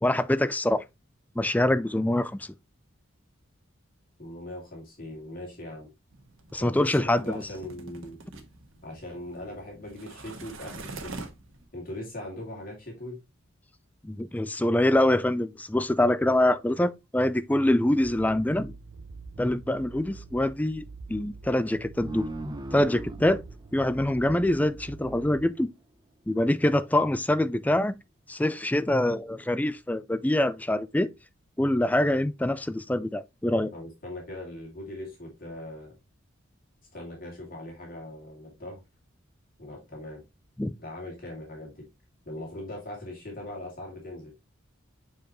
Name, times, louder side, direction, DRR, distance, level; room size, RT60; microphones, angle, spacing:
voice 1, 0.0-0.8 1.4-2.5 6.5-7.4 14.0-18.7 19.4-22.3 22.7-23.4 23.7-25.7 26.3-28.0 28.3-31.1 31.6-33.7 40.6-40.7, left 1 dB, 5° left, 0.3 m, -25 dB
voice 2, 4.2-5.9 6.6-8.2 8.8-11.3 11.7-13.2 33.7-35.9 36.9-38.8 39.6-40.2 40.8-41.9 42.2-44.3, left 1 dB, 40° left, 2.5 m, -40 dB
sound 1, 6.1-11.7, right 3 dB, 70° right, 1.4 m, -45 dB
sound 2, 18.0-25.4, right 4 dB, 85° right, 0.5 m, -45 dB
sound 3, 22.0-25.2, right 1 dB, 20° right, 0.7 m, -39 dB
7.5 x 4.8 x 3.0 m
head